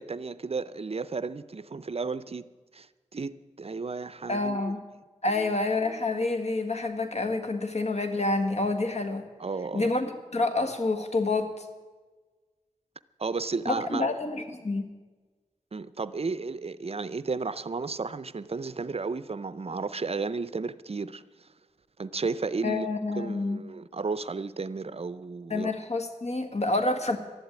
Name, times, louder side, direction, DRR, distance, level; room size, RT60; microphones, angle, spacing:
voice 1, 0.0-2.5 2.7-4.7 5.3-5.5 9.4-9.9 13.2-14.1 15.7-21.5 22.0-22.9 23.2-25.7, right 4 dB, 50° right, 0.6 m, -33 dB
voice 2, 4.3-4.8 5.2-9.3 9.7-11.7 13.6-14.9 22.6-23.6 25.5-27.2, left 2 dB, 60° left, 1.7 m, -28 dB
12.5 x 11.5 x 8.9 m
wide cardioid pair, 60°, 13 cm